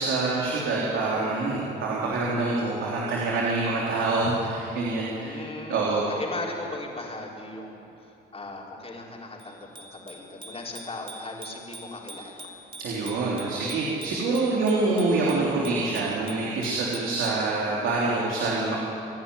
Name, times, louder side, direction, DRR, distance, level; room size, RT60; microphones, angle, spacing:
voice 1, 0.0-5.4 5.7-6.0 12.8-18.8, right 3 dB, 80° right, -5 dB, 3.4 m, -26 dB
voice 2, 5.1-12.5, left 2 dB, 30° left, -2 dB, 4.5 m, -38 dB
Bicycle bell, 9.4-17.5, right 1 dB, 25° right, 2.7 m, -45 dB
27.5 x 11.0 x 9.9 m, 2.9 s
cardioid pair, 90°, 20 cm